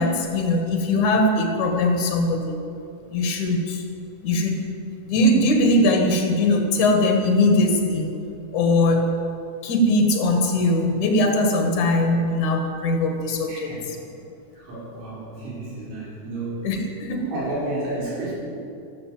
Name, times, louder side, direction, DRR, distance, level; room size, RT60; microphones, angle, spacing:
voice 1, 0.0-2.6 3.1-3.8 4.2-4.6 5.1-8.1 8.5-9.2 9.6-13.7 16.6-17.3, left 1 dB, 55° left, 3 dB, 2.6 m, -20 dB
voice 2, 13.5-13.9 14.5-16.7 17.3-18.3, right 2 dB, 90° right, -7 dB, 7.2 m, -31 dB
14.0 x 12.5 x 7.8 m, 2.6 s
omnidirectional pair, 5.1 m